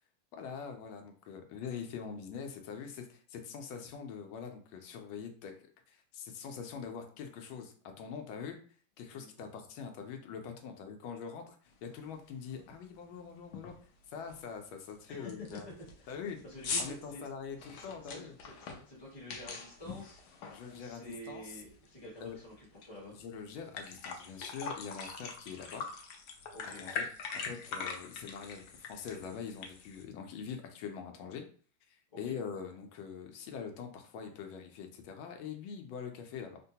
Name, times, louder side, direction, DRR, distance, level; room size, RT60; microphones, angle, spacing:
voice 1, 0.3-5.5 5.9-8.6 9.0-11.6 11.8-13.8 14.1-15.7 16.1-16.4 16.8-18.3 20.5-21.5 22.2-22.4 23.1-25.8 26.6-27.1 27.3-31.4 31.9-36.6, left 6 dB, 90° left, 4 dB, 1.4 m, -43 dB
voice 2, 9.1-9.5 15.1-15.6 16.0-16.1 16.4-17.3 17.6-23.2 26.5-26.8 32.2-32.3, equal, 20° left, -5 dB, 0.8 m, -49 dB
sound 1, 11.9-12.0 12.5-12.8 13.0-13.1 13.5-13.9 14.3-14.4 14.9-15.0 15.3-21.2 21.6-22.9 23.2-23.3 23.6-30.0, left 5 dB, 70° left, 1.1 m, -42 dB
3.6 x 2.2 x 2.7 m, 0.43 s
omnidirectional pair, 2.1 m